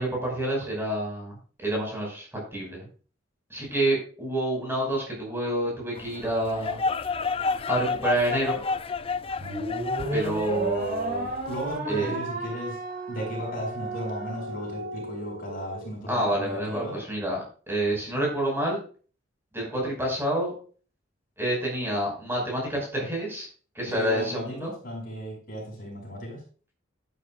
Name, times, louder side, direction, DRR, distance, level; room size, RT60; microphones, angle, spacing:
voice 1, 0.0-1.3 1.6-2.9 3.5-6.8 7.7-8.6 10.1-11.3 11.9-12.2 16.1-17.4 17.7-18.8 19.5-20.5 21.4-23.5 23.7-24.7, right 1 dB, 15° right, -2 dB, 5.5 m, -28 dB
sound 1, 6.0-11.8, left 4 dB, 30° left, 0.4 m, -31 dB
sound 2, 9.4-15.9, right 1 dB, 50° right, 3.2 m, -33 dB
voice 2, 11.4-12.8 13.1-17.0 18.1-18.2 23.8-26.4, equal, 50° left, -1 dB, 6.3 m, -35 dB
12.5 x 11.5 x 2.5 m, 0.39 s
head